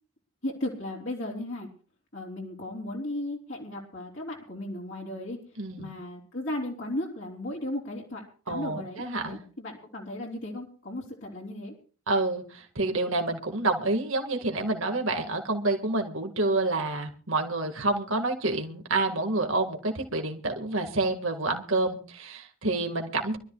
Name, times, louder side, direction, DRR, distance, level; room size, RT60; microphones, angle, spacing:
voice 1, 0.4-1.7 2.1-5.4 5.8-11.7, left 1 dB, 55° left, -1 dB, 3.4 m, -35 dB
voice 2, 5.6-5.9 8.5-9.4 12.1-23.4, right 2 dB, 65° right, 4 dB, 1.9 m, -28 dB
25.5 x 13.0 x 2.4 m, 0.40 s
head